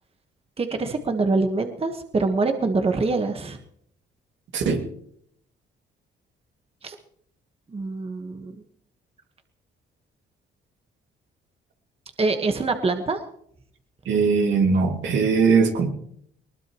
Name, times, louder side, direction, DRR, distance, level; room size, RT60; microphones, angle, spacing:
voice 1, 0.6-3.6 6.8-7.0 7.7-8.5 12.2-13.2, right 3 dB, 30° right, 6 dB, 1.4 m, -24 dB
voice 2, 4.5-4.8 14.1-15.9, right 5 dB, 70° right, 3 dB, 2.3 m, -20 dB
20.5 x 19.5 x 3.1 m, 0.69 s
cardioid pair, 90°, 20 cm